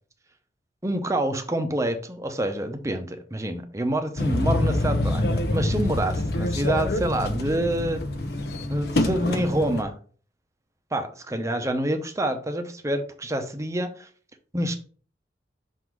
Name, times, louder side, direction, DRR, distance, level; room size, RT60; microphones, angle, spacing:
voice 1, 0.8-8.0 8.7-9.9 10.9-14.1 14.5-14.8, right 1 dB, 15° right, 6 dB, 0.8 m, -27 dB
sound 1, 4.2-9.8, left 1 dB, 60° left, 0.8 m, -26 dB
6.2 x 3.9 x 4.6 m, 0.42 s
head